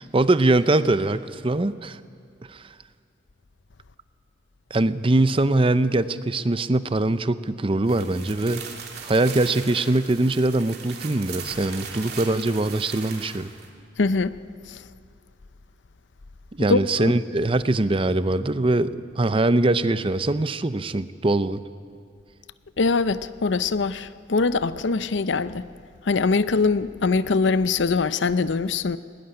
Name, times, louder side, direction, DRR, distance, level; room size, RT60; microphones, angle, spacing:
voice 1, 0.0-2.0 2.5-2.6 4.7-8.6 9.0-13.5 16.5-21.6, right 2 dB, 30° right, 0.6 m, -22 dB
sound 1, 7.8-13.7, right 6 dB, 55° right, 3.0 m, -39 dB
voice 2, 14.0-14.3 14.7-14.8 16.7-17.1 22.8-25.7 26.0-29.0, left 4 dB, 75° left, 0.6 m, -23 dB
20.5 x 19.0 x 9.9 m
head